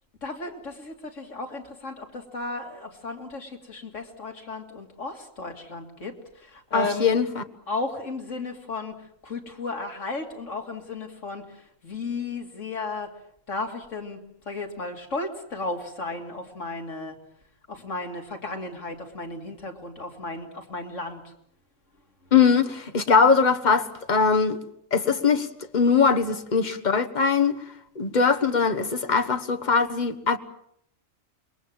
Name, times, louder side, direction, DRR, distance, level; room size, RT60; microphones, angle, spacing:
voice 1, 0.2-7.1 7.5-13.1 13.5-17.2 17.7-21.3 22.3-22.4, left 3 dB, 70° left, 3.2 m, -34 dB
voice 2, 6.7-7.4 22.3-24.6 24.9-25.5 25.7-27.6 28.0-30.4, left 5 dB, 35° left, 1.4 m, -21 dB
27.0 x 21.5 x 7.5 m
omnidirectional pair, 1.3 m